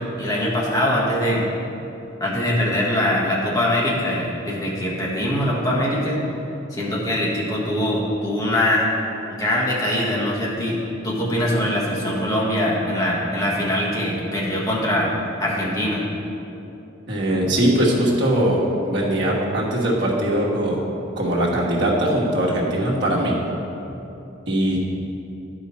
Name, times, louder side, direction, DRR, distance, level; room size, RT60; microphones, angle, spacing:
voice 1, 0.0-1.4 2.2-6.2 6.7-8.9 9.3-15.1 15.4-16.0, left 1 dB, 20° left, -5 dB, 1.4 m, -22 dB
voice 2, 17.1-20.8 21.2-23.4 24.5-24.8, right 1 dB, 60° right, -3 dB, 1.3 m, -21 dB
10.5 x 5.0 x 4.2 m, 2.9 s
head